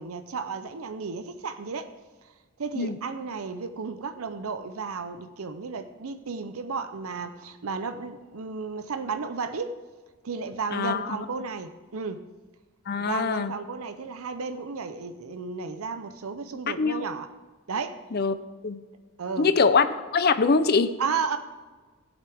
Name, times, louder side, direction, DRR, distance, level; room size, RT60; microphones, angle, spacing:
voice 1, 0.0-1.9 2.6-9.8 10.2-12.2 13.0-17.3 17.7-18.0 19.2-19.5 21.0-21.4, right 5 dB, 75° right, 9 dB, 0.6 m, -33 dB
voice 2, 10.7-11.1 12.9-13.5 16.7-17.1 18.1-18.3 18.6-18.8 19.4-19.9 20.1-20.9, left 4 dB, 45° left, 12 dB, 0.6 m, -23 dB
16.0 x 8.1 x 3.5 m, 1.3 s
head